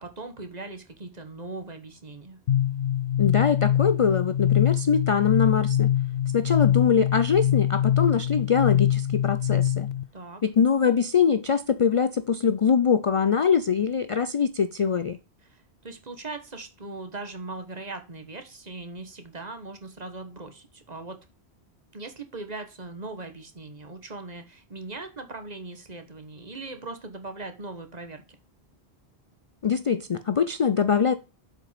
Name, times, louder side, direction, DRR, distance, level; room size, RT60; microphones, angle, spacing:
voice 1, 0.0-2.4 10.1-10.4 15.4-21.2 21.9-28.4, right 3 dB, 40° right, 1.4 m, -39 dB
sound 1, 2.5-10.0, left 11 dB, 70° left, 0.9 m, -24 dB
voice 2, 3.2-5.9 6.3-9.9 10.4-15.2 29.6-31.1, left 6 dB, 50° left, 0.4 m, -23 dB
7.7 x 5.2 x 5.0 m
omnidirectional pair, 1.1 m